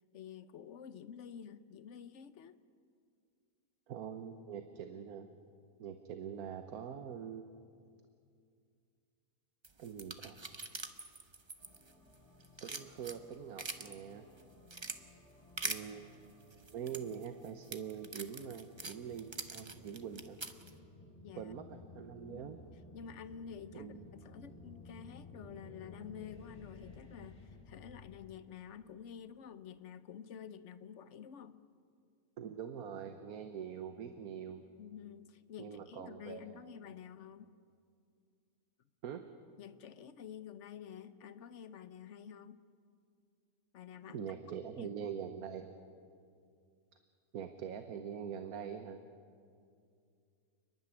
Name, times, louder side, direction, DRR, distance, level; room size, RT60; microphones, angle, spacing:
voice 1, 0.1-2.6 21.2-21.5 22.2-22.6 22.9-31.6 34.8-37.5 39.6-42.6 43.7-44.3 44.8-45.0, left 8 dB, 60° left, 13 dB, 1.0 m, -50 dB
voice 2, 3.9-5.3 5.8-7.6 9.8-10.4 12.6-14.3 15.6-20.4 21.4-22.6 23.7-24.1 32.4-34.6 35.6-36.6 39.0-39.2 44.1-45.7 47.3-49.0, right 8 dB, 80° right, 7 dB, 1.4 m, -44 dB
sound 1, 9.6-12.2 12.4-14.0 14.4-15.0 15.6-15.8 16.5-20.7, right 3 dB, 25° right, 0.8 m, -43 dB
sound 2, 11.6-28.4, left 3 dB, 25° left, 4.1 m, -57 dB
30.0 x 11.5 x 9.8 m, 2.3 s
omnidirectional pair, 1.5 m